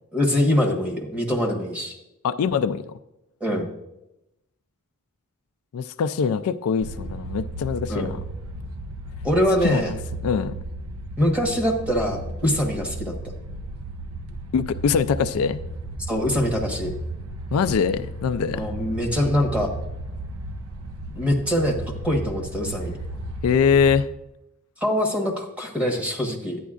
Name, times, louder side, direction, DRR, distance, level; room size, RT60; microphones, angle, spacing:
voice 1, 0.1-1.9 3.4-3.7 7.9-8.2 9.2-10.0 11.2-13.1 16.1-16.9 18.5-19.7 21.1-21.8 22.0-22.9 24.8-26.6, equal, 5° right, 1 dB, 1.2 m, -23 dB
voice 2, 2.2-3.0 5.7-8.2 9.6-10.0 10.2-10.5 14.5-15.6 17.5-18.7 23.4-24.1, left 6 dB, 70° left, 11 dB, 0.3 m, -23 dB
sound 1, 6.8-24.0, right 1 dB, 75° right, 0.6 m, -34 dB
11.0 x 9.2 x 2.4 m, 0.90 s
head